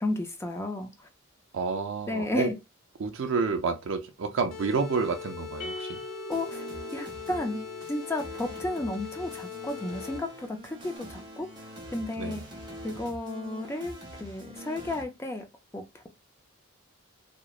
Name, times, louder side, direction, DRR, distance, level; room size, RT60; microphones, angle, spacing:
voice 1, 0.0-0.9 2.1-2.5 6.3-6.7 6.9-7.6 7.9-11.5 11.9-12.4 12.8-15.4 15.7-16.1, left 2 dB, 15° left, 0.3 m, -33 dB
voice 2, 1.5-2.5 3.0-6.0 12.2-12.5, right 4 dB, 60° right, 0.4 m, -29 dB
sound 1, 4.5-10.5, left 7 dB, 85° left, 0.4 m, -41 dB
sound 2, 5.6-8.1, right 1 dB, 40° left, 0.9 m, -41 dB
sound 3, 6.3-15.0, equal, 20° right, 0.7 m, -44 dB
2.9 x 2.1 x 2.3 m
head